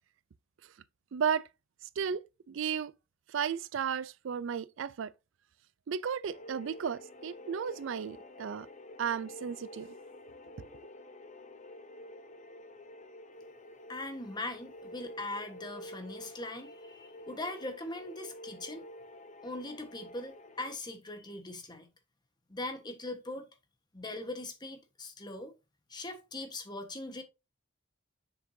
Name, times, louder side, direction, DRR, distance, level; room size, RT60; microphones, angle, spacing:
voice 1, 1.1-1.5 2.0-2.9 3.3-5.1 5.9-8.7 9.0-9.9 10.6-10.7, right 7 dB, 75° right, 0.4 m, -34 dB
sound 1, 6.3-20.7, left 1 dB, 40° left, 0.7 m, -49 dB
voice 2, 13.9-18.8 19.4-21.9 22.5-23.5 23.9-25.5 25.9-27.2, left 2 dB, 20° left, 1.3 m, -40 dB
7.3 x 5.9 x 2.7 m
head